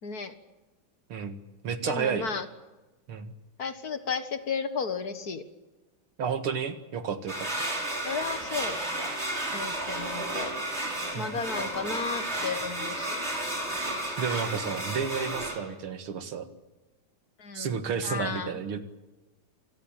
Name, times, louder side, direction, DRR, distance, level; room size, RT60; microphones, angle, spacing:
voice 1, 0.0-0.3 1.8-2.5 3.6-5.4 8.0-8.8 9.5-10.5 11.2-13.2 17.4-17.8 18.0-18.6, left 5 dB, 45° left, 11 dB, 2.0 m, -33 dB
voice 2, 1.1-2.3 3.1-3.3 6.2-7.7 11.1-11.4 14.2-16.5 17.5-18.8, right 6 dB, 80° right, 10 dB, 2.7 m, -32 dB
sound 1, 7.3-15.5, right 1 dB, 30° right, 6.0 m, -32 dB
26.5 x 19.0 x 9.0 m, 1.1 s
omnidirectional pair, 2.3 m